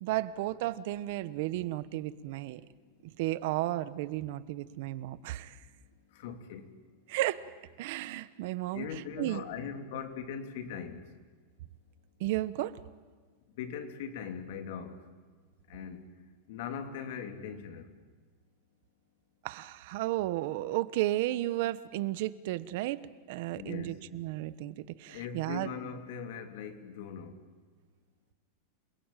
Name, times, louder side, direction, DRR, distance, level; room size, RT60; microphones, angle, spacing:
voice 1, 0.0-2.6 3.0-5.6 7.1-7.5 7.8-8.9 9.2-9.4 12.2-12.8 19.4-23.0 23.3-25.7, right 16 dB, 50° right, 16 dB, 1.1 m, -33 dB
voice 2, 6.1-6.7 8.7-11.0 13.6-15.1 15.7-16.1 16.5-17.9 23.5-24.0 25.1-27.4, left 7 dB, 60° left, 7 dB, 3.1 m, -40 dB
28.5 x 21.0 x 9.2 m, 1.5 s
supercardioid pair, 165°, 0 cm